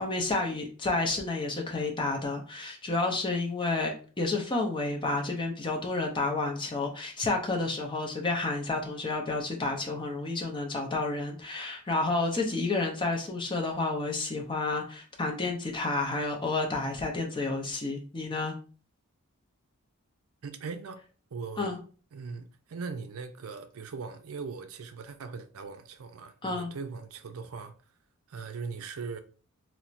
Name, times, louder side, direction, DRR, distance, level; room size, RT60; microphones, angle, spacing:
voice 1, 0.0-18.5 21.6-21.8 26.4-26.7, left 3 dB, 20° left, 0.6 m, -30 dB
voice 2, 20.4-21.0 21.3-21.7 22.1-27.7 28.3-29.2, right 5 dB, 75° right, 0.4 m, -40 dB
4.3 x 2.1 x 2.5 m
head